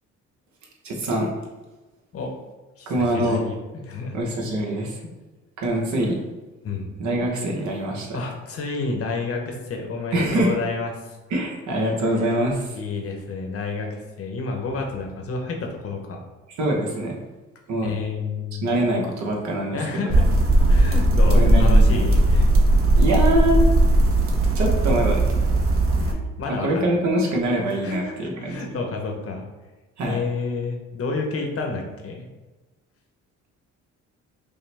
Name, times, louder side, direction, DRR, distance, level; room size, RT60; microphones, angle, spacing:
voice 1, 0.8-1.3 2.9-3.4 4.1-5.0 5.6-6.2 7.0-8.2 10.1-10.6 11.3-12.8 16.6-17.2 17.7-17.9 18.6-19.8 21.3-21.9 23.0-23.6 24.6-25.2 26.6-28.7 30.0-30.2, right 1 dB, 70° right, 0 dB, 1.0 m, -24 dB
voice 2, 2.8-3.6 3.9-4.2 6.6-6.9 8.1-11.2 12.7-16.2 17.8-18.8 19.7-22.5 22.9-23.0 26.0-26.9 27.8-29.5 30.0-32.3, left 4 dB, 50° left, 2 dB, 0.8 m, -30 dB
sound 1, 20.1-26.1, right 1 dB, 45° right, 0.7 m, -17 dB
5.4 x 2.1 x 3.3 m, 1.2 s
cardioid pair, 90°, 30 cm